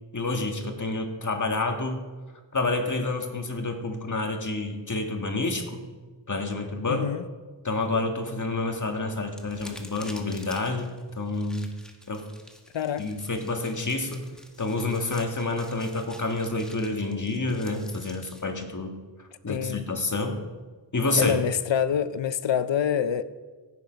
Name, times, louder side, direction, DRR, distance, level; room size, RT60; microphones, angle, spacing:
voice 1, 0.1-2.0 2.5-5.8 6.3-7.1 7.6-11.7 12.1-12.3 13.0-14.2 14.6-20.4 20.9-21.4, left 2 dB, 45° left, 1.8 m, -29 dB
voice 2, 6.9-7.2 12.7-13.1 19.5-19.8 21.2-23.2, left 9 dB, 85° left, 0.6 m, -26 dB
sound 1, 9.3-18.4, equal, ahead, 1.7 m, -49 dB
16.5 x 7.0 x 5.2 m
wide cardioid pair, 55°, 44 cm